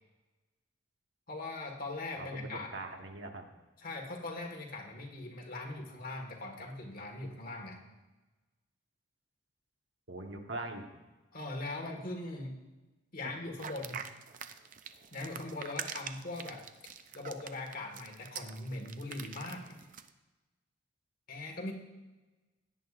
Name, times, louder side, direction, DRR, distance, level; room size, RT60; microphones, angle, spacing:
voice 1, 1.3-2.7 3.8-7.8 11.3-12.6 13.1-14.1 15.1-16.6 17.1-19.8 21.3-21.7, left 2 dB, 50° left, 2 dB, 1.6 m, -40 dB
voice 2, 2.5-3.5 10.1-10.8, right 2 dB, 75° right, 3 dB, 1.3 m, -41 dB
sound 1, 13.6-20.1, right 8 dB, 45° right, 0.5 m, -44 dB
16.5 x 9.6 x 2.5 m, 1.1 s
head